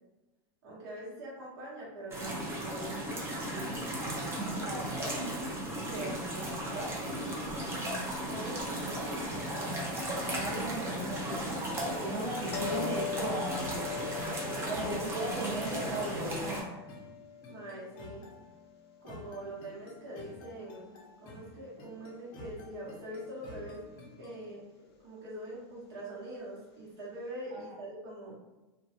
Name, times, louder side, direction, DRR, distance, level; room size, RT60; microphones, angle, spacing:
voice 1, 0.6-3.0 3.8-4.0 17.5-18.2 19.0-20.9 21.2-23.8 24.2-24.6 25.0-28.4, right 1 dB, 75° right, -7 dB, 1.0 m, -43 dB
sound 1, 2.1-16.6, right 1 dB, 20° right, 0.5 m, -36 dB
voice 2, 4.5-5.3 5.7-6.9 7.2-7.3 8.2-14.1 14.7-16.6 27.5-27.8, right 1 dB, 35° right, -8 dB, 1.1 m, -38 dB
sound 2, 7.0-24.5, left 2 dB, 35° left, 0.5 m, -51 dB
sound 3, 12.5-19.5 24.8-25.0, left 10 dB, 90° left, 0.4 m, -42 dB
2.3 x 2.1 x 2.7 m, 1.1 s
supercardioid pair, 150°, 13 cm